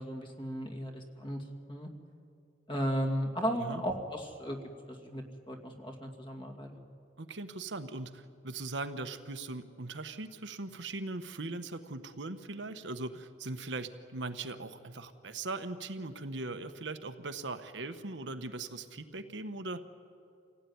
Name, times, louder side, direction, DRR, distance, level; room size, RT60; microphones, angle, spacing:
voice 1, 0.0-1.4 1.7-1.9 2.7-4.6 4.9-6.8, equal, 25° left, 3 dB, 2.5 m, -35 dB
voice 2, 7.2-19.8, right 2 dB, 70° right, 8 dB, 1.2 m, -40 dB
27.0 x 17.0 x 9.5 m, 2.4 s
head